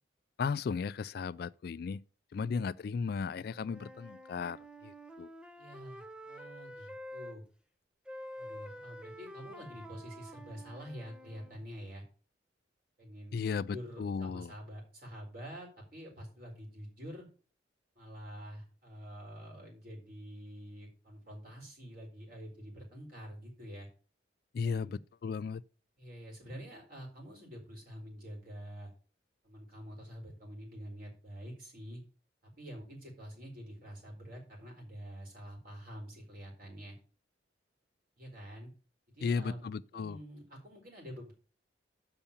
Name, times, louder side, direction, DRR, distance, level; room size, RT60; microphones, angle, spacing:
voice 1, 0.4-2.0 2.3-4.6 4.8-5.3 13.3-14.5 24.5-25.6 39.2-40.2, left 5 dB, 55° left, 0.3 m, -35 dB
voice 2, 2.3-2.7 5.6-7.4 8.4-12.0 13.0-17.3 18.0-23.9 24.6-25.0 26.0-28.9 29.4-32.0 32.6-37.0 38.2-38.7 39.1-39.7 39.9-41.3, equal, 50° right, 4.2 m, -47 dB
Wind instrument woodwind instrument, 3.4-7.4 8.0-11.6, equal, 5° right, 0.7 m, -48 dB
7.0 x 5.7 x 6.9 m
head